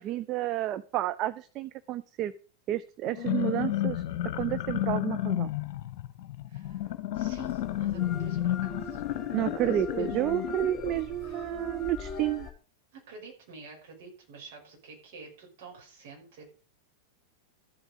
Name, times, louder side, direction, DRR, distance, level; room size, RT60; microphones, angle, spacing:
voice 1, 0.0-2.3 2.7-4.0 4.3-5.5 9.3-12.5, right 13 dB, 35° right, 13 dB, 0.5 m, -30 dB
sound 1, 3.1-10.9, left 12 dB, 45° left, 1.3 m, -31 dB
voice 2, 6.5-9.0 9.6-10.2 11.2-11.5 12.9-16.4, right 4 dB, 50° right, 0 dB, 5.5 m, -50 dB
sound 2, 6.6-12.5, left 1 dB, 10° left, 3.4 m, -41 dB
13.5 x 8.0 x 5.1 m, 0.39 s
figure-of-eight pair, 90°, 0 cm